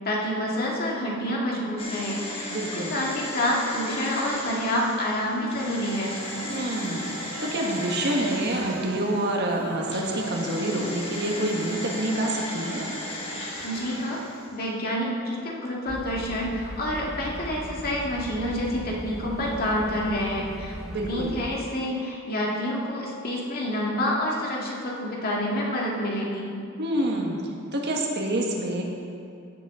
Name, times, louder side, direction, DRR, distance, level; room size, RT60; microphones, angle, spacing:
voice 1, 0.0-2.5 2.7-6.1 13.6-14.2 14.5-20.8 21.1-26.5, left 1 dB, 50° left, -3 dB, 1.9 m, -28 dB
sound 1, 1.8-9.4 9.9-14.6 14.8-14.9, left 1 dB, 30° left, 1.8 m, -36 dB
voice 2, 2.5-3.0 6.5-12.9 20.9-21.3 26.8-27.4 27.7-28.8, right 1 dB, 55° right, -1 dB, 1.5 m, -27 dB
sound 2, 5.9-14.5, right 4 dB, 90° right, 0.6 m, -41 dB
sound 3, 15.9-21.6, equal, 5° right, 0.3 m, -38 dB
16.5 x 7.4 x 3.7 m, 2.5 s
head